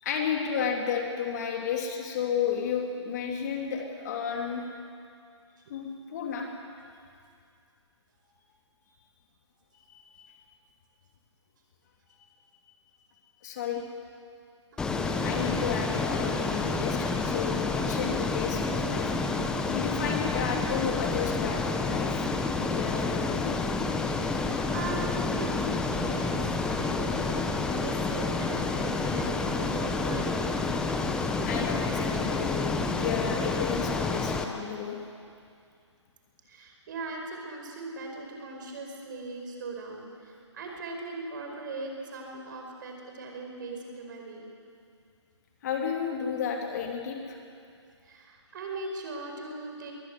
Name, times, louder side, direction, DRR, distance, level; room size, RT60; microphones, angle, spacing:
voice 1, 0.0-4.6 5.7-6.5 9.9-10.3 13.4-13.8 15.2-19.1 19.7-22.3 22.7-23.6 31.5-35.0 45.6-47.4, left 7 dB, 35° left, 1 dB, 2.7 m, -32 dB
voice 2, 14.7-15.1 24.2-25.5 25.9-30.7 36.5-44.4 48.0-49.9, right 3 dB, 40° right, 2 dB, 5.0 m, -40 dB
Ocean, 14.8-34.4, left 3 dB, 5° left, 0.8 m, -29 dB
22.5 x 19.0 x 8.0 m, 2.4 s
figure-of-eight pair, 150°, 16 cm